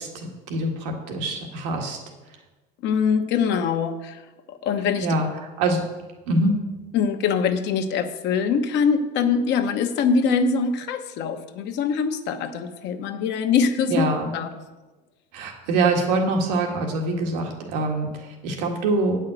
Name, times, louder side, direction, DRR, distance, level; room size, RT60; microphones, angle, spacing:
voice 1, 0.0-2.0 5.0-5.3 5.6-5.8 6.3-6.6 13.9-14.3 15.3-19.2, right 2 dB, 85° right, 2 dB, 1.8 m, -24 dB
voice 2, 2.8-4.2 4.5-5.1 6.9-14.1 14.3-14.5, left 6 dB, 60° left, 7 dB, 1.1 m, -23 dB
9.0 x 5.6 x 7.7 m, 1.2 s
supercardioid pair, 115°, 21 cm